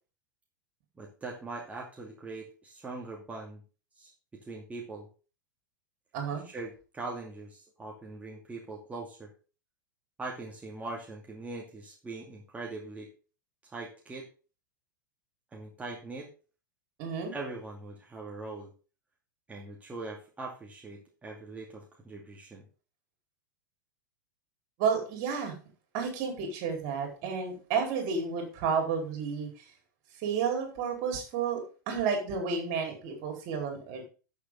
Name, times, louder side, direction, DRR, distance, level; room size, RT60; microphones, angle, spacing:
voice 1, 1.0-3.6 4.0-5.1 6.4-9.3 10.2-13.1 13.6-14.3 15.5-16.3 17.3-18.7 19.5-22.6, right 3 dB, 15° right, -2 dB, 2.5 m, -41 dB
voice 2, 6.1-6.4 17.0-17.3 24.8-25.5 25.9-29.5 30.2-34.1, right 6 dB, 45° right, 3 dB, 4.6 m, -31 dB
13.0 x 7.0 x 4.0 m, 0.35 s
figure-of-eight pair, 90°, 11 cm